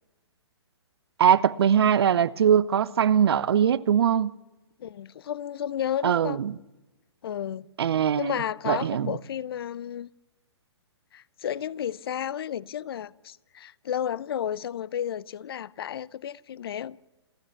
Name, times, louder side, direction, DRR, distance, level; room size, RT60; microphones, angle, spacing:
voice 1, 1.2-4.3 6.0-6.5 7.8-8.3 8.7-9.1, right 8 dB, 60° right, 0.9 m, -21 dB
voice 2, 4.8-6.4 7.2-7.7 8.2-10.1 11.1-17.0, left 10 dB, 60° left, 0.7 m, -32 dB
29.5 x 14.5 x 7.1 m
figure-of-eight pair, 125°, 14 cm